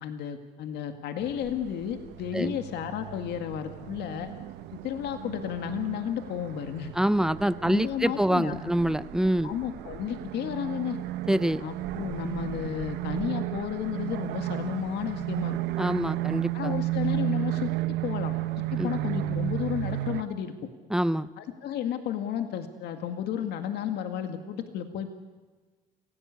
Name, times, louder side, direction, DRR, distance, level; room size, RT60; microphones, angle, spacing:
voice 1, 0.0-4.3 4.7-6.9 7.6-8.7 9.4-11.0 11.6-15.6 16.5-17.7 18.0-18.4 18.7-20.5 21.4-25.1, left 9 dB, 75° left, 6 dB, 2.1 m, -32 dB
sound 1, 1.2-20.2, right 15 dB, 85° right, 1.0 m, -33 dB
voice 2, 6.9-9.6 11.3-11.6 15.8-16.7 18.8-18.9 20.9-21.3, right 1 dB, 5° right, 15 dB, 0.7 m, -25 dB
27.5 x 17.0 x 8.3 m, 1.4 s
cardioid pair, 110°, 17 cm